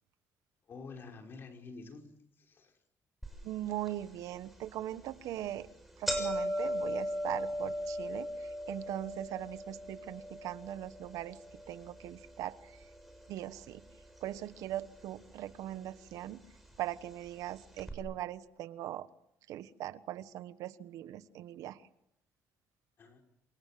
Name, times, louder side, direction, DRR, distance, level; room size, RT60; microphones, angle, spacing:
voice 1, 0.7-2.1 2.4-2.8 23.0-23.2, left 4 dB, 40° left, 3 dB, 5.6 m, -48 dB
sound 1, 3.2-3.3 3.9-4.0 4.8-5.0 5.3-5.4 5.7-13.9 14.2-14.9 15.7-15.8 16.7-16.8 17.1-17.2 17.8-17.9, equal, ahead, 6.5 m, -38 dB
voice 2, 3.4-5.7 6.0-11.4 11.7-12.6 13.3-13.8 14.2-16.4 16.8-19.1 19.5-21.8, right 13 dB, 80° right, 14 dB, 1.2 m, -40 dB
28.5 x 27.5 x 7.7 m, 0.79 s
cardioid pair, 150°, 6 cm